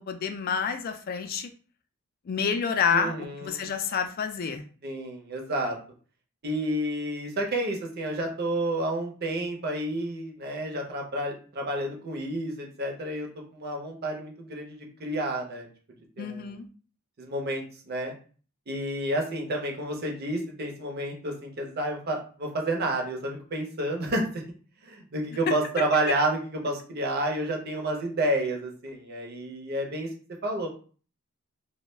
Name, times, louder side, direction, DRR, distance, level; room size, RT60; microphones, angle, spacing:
voice 1, 0.1-1.5 2.3-4.7 16.2-16.7, left 6 dB, 40° left, 7 dB, 0.3 m, -28 dB
voice 2, 2.9-3.7 4.8-5.8 6.4-15.7 16.2-16.5 17.2-18.1 18.7-24.4 24.8-30.1 30.4-30.7, right 1 dB, 45° right, 1 dB, 0.6 m, -30 dB
2.2 x 2.1 x 3.1 m, 0.40 s
head